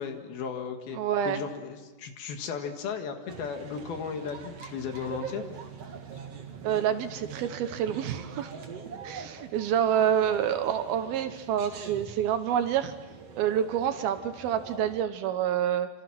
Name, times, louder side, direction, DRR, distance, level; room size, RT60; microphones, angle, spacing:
voice 1, 0.0-1.0 1.3-5.4, left 6 dB, 70° left, 5 dB, 3.5 m, -35 dB
voice 2, 0.9-1.4 6.6-8.5 9.0-12.9 13.4-15.9, right 9 dB, 75° right, 9 dB, 2.8 m, -27 dB
sound 1, 3.3-15.0, right 6 dB, 45° right, 2.4 m, -43 dB
27.5 x 26.0 x 6.1 m, 1.1 s
omnidirectional pair, 4.7 m